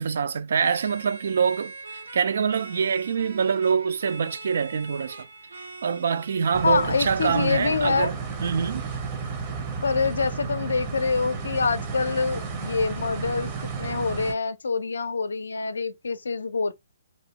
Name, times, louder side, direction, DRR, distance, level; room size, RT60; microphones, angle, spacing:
voice 1, 0.0-5.3 5.8-8.2 8.4-8.9, right 6 dB, 70° right, 0.3 m, -25 dB
sound 1, 0.6-7.4, right 3 dB, 85° right, 0.8 m, -42 dB
sound 2, 6.5-14.3, right 5 dB, 30° right, 0.7 m, -33 dB
voice 2, 6.6-8.1 9.8-16.7, left 4 dB, 85° left, 0.4 m, -26 dB
2.6 x 2.1 x 2.8 m
hypercardioid pair, 145°, 0 cm